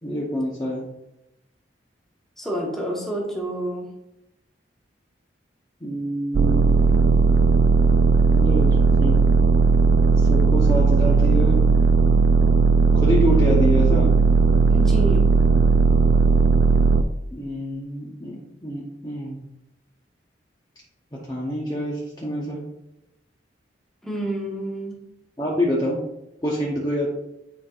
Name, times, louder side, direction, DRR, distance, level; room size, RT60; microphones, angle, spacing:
voice 1, 0.0-0.9 5.8-6.7 8.3-8.7 9.0-9.2 10.2-11.6 12.9-14.1 17.3-19.4 21.3-22.6 25.4-26.0 26.4-27.1, equal, 20° left, -4 dB, 0.9 m, -26 dB
voice 2, 2.4-3.9 14.7-15.3 24.0-25.0, right 1 dB, ahead, -3 dB, 1.3 m, -29 dB
sound 1, 6.3-17.0, right 4 dB, 60° right, 0.3 m, -17 dB
9.3 x 4.5 x 2.4 m, 0.87 s
head